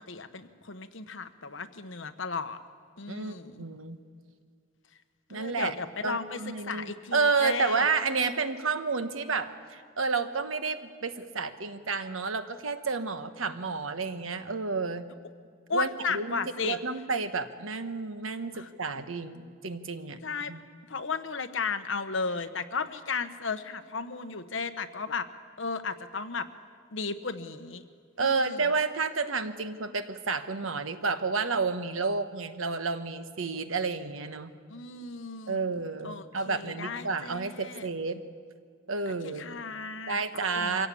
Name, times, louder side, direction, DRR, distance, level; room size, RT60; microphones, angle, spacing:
voice 1, 0.1-2.6 3.0-3.6 5.3-7.9 15.7-16.8 18.5-18.7 20.2-20.5 20.9-25.3 25.6-26.5 26.9-27.8 28.2-28.6 34.7-37.9 39.2-40.2 40.5-40.9, left 4 dB, 70° left, 9 dB, 1.2 m, -35 dB
voice 2, 3.1-4.0 5.3-5.7 6.0-15.1 15.7-16.4 16.6-20.2 20.5-20.6 28.2-34.5 35.5-38.2 38.9-39.5 40.1-40.9, right 4 dB, 85° right, 10 dB, 1.3 m, -30 dB
24.0 x 16.5 x 8.5 m, 2.1 s
head